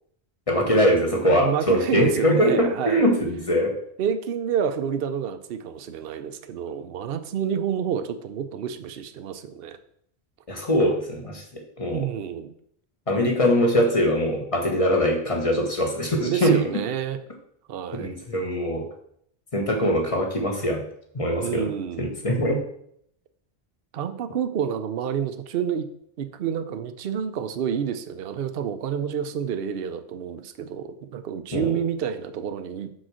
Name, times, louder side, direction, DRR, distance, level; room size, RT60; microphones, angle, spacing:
voice 1, 0.5-3.7 10.5-12.1 13.1-16.6 17.9-18.9 19.5-20.8 21.1-21.7 22.0-22.6 31.5-31.7, equal, 30° left, 1 dB, 1.5 m, -22 dB
voice 2, 1.2-3.0 4.0-9.8 11.9-12.5 16.2-17.2 17.7-18.1 21.4-22.1 23.9-25.9 26.2-32.9, right 8 dB, 65° right, 9 dB, 0.8 m, -29 dB
6.3 x 4.9 x 6.3 m, 0.69 s
omnidirectional pair, 1.1 m